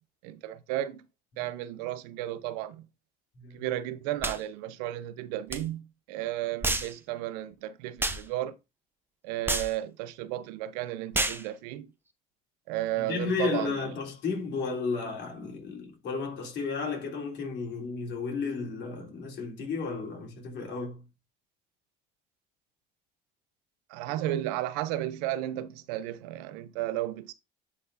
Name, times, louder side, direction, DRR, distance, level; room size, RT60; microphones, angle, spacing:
voice 1, 0.2-1.1 1.4-2.9 3.5-8.5 9.2-11.9 12.7-13.8 23.9-27.3, right 14 dB, 90° right, 0.6 m, -33 dB
sound 1, 4.2-4.4 5.5-5.6 6.6-6.9 8.0-8.2 9.5-9.7 11.1-11.4, right 2 dB, 10° right, 0.9 m, -29 dB
voice 2, 13.0-21.0, left 4 dB, 60° left, 3.2 m, -33 dB
10.0 x 4.3 x 2.6 m
supercardioid pair, 80°, 20 cm